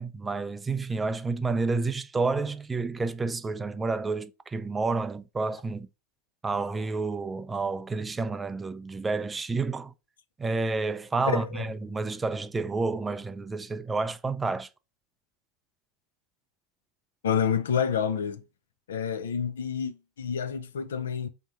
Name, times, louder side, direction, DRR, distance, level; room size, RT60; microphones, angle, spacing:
voice 1, 0.0-5.9 6.4-9.9 10.4-14.7, right 3 dB, 15° right, 0.4 m, -30 dB
voice 2, 11.3-11.7 17.2-18.4 18.9-21.3, left 7 dB, 90° left, 0.5 m, -28 dB
3.5 x 2.8 x 3.6 m
hypercardioid pair, 100°, 0 cm